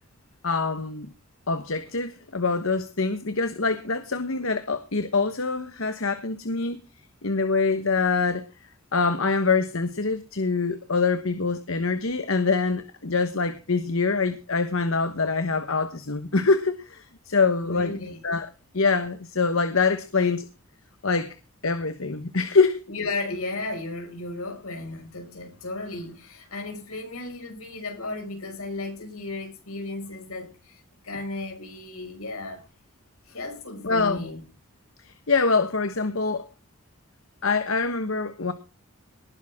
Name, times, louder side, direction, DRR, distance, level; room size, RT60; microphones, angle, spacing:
voice 1, 0.4-1.1 1.5-6.8 7.2-8.5 8.9-18.0 18.2-20.4 21.0-21.3 21.6-22.8 33.8-34.3 35.0-36.5 37.4-38.5, left 4 dB, 70° left, 1.2 m, -25 dB
voice 2, 17.6-18.2 22.9-32.6 33.3-34.4, left 2 dB, 85° left, 6.0 m, -35 dB
19.5 x 11.0 x 3.7 m
head